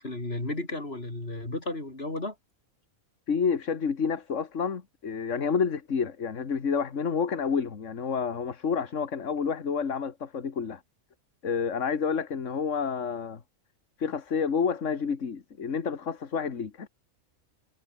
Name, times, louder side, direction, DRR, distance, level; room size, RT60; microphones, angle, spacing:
voice 1, 0.0-2.4, left 2 dB, 45° left, 5.3 m, -33 dB
voice 2, 3.3-10.8 11.4-13.4 14.0-16.9, left 6 dB, 65° left, 2.0 m, -29 dB
omnidirectional pair, 1.4 m